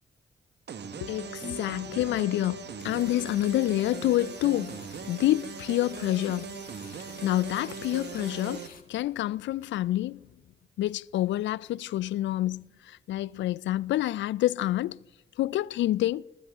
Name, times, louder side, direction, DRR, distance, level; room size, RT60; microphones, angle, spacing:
sound 1, 0.7-8.7, right 6 dB, 60° right, 1.4 m, -40 dB
voice 1, 1.0-6.6 6.8-10.2 10.8-15.0 15.4-16.2, left 14 dB, 70° left, 0.4 m, -28 dB
sound 2, 1.2-8.8, left 5 dB, 45° left, 2.5 m, -49 dB
24.5 x 13.0 x 3.7 m
hypercardioid pair, 45°, 20 cm